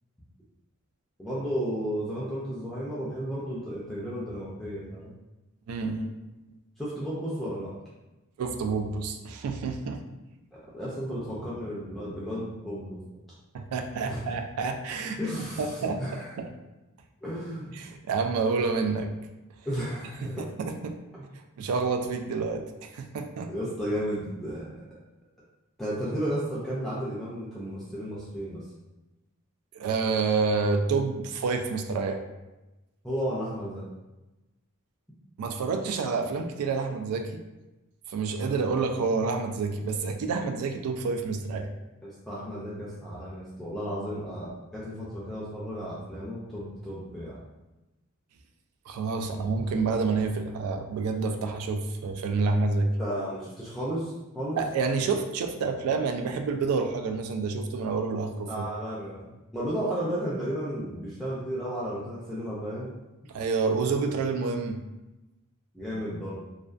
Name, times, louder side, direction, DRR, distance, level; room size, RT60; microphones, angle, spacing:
voice 1, 1.2-5.1 6.8-7.7 10.5-13.0 14.0-14.2 15.2-16.3 17.2-17.7 19.7-20.5 21.2-21.3 23.5-24.8 25.8-28.6 33.0-33.8 42.0-47.4 53.0-54.6 58.5-62.9 65.7-66.4, equal, ahead, -8 dB, 0.4 m, -33 dB
voice 2, 5.7-6.1 8.4-10.0 13.5-15.2 15.6-16.5 17.7-19.1 20.2-21.0 21.6-23.5 29.7-32.2 35.4-37.4 38.1-41.7 48.9-52.9 54.6-58.5 63.3-64.8, right 4 dB, 80° right, 9 dB, 0.3 m, -28 dB
2.4 x 2.2 x 2.3 m, 1.1 s
head